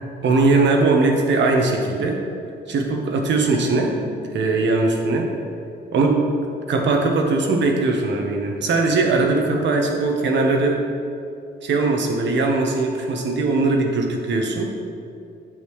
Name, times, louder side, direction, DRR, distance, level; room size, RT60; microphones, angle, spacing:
voice 1, 0.2-2.2 2.7-4.0 4.3-5.3 5.9-6.2 6.7-10.8 11.6-14.7, right 3 dB, 65° right, 2 dB, 1.2 m, -20 dB
9.0 x 6.7 x 3.2 m, 2.5 s
cardioid pair, 90°, 20 cm